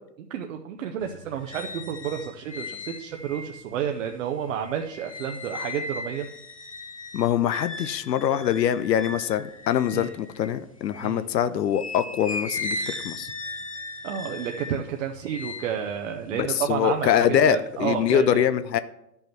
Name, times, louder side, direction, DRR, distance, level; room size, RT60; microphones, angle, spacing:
voice 1, 0.2-6.3 9.9-10.1 11.0-11.3 14.0-18.4, right 8 dB, 50° right, 4 dB, 0.8 m, -31 dB
Metal Stretch One, 1.0-11.2 11.7-17.2 17.6-18.2, left 3 dB, 25° left, 0.3 m, -38 dB
voice 2, 7.1-13.3 16.3-18.8, left 9 dB, 85° left, 13 dB, 0.7 m, -24 dB
10.5 x 5.5 x 4.5 m, 0.83 s
hypercardioid pair, 140°, 49 cm